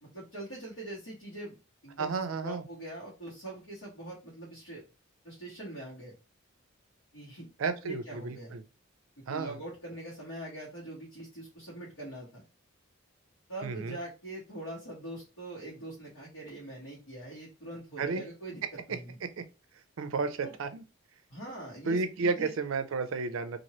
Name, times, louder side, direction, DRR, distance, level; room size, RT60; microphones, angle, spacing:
voice 1, 0.0-1.6 1.8-4.8 5.2-6.1 7.1-7.5 7.8-8.6 9.3-12.4 13.5-19.2 20.4-20.5 21.3-22.5, right 1 dB, 80° left, 1.2 m, -43 dB
voice 2, 2.0-2.6 7.6-8.6 9.3-9.6 13.6-14.0 18.0-18.2 19.2-19.4 20.0-20.8 21.8-23.6, right 4 dB, 80° right, 0.4 m, -32 dB
2.8 x 2.6 x 3.0 m
head